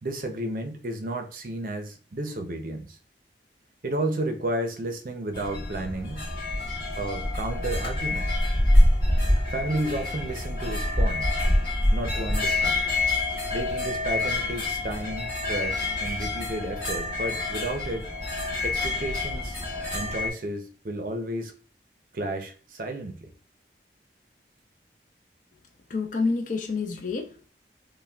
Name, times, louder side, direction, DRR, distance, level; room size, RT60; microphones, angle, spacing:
voice 1, 0.0-3.0 3.8-6.2 7.0-8.3 9.5-11.3 11.9-12.8 13.5-18.1 18.6-19.6 19.9-21.5 22.1-23.3, right 1 dB, 50° right, 0.5 m, -32 dB
sound 1, 5.3-20.3, left 1 dB, 25° left, 1.8 m, -26 dB
voice 2, 25.9-27.5, left 4 dB, 45° left, 0.4 m, -28 dB
5.5 x 2.2 x 2.3 m
head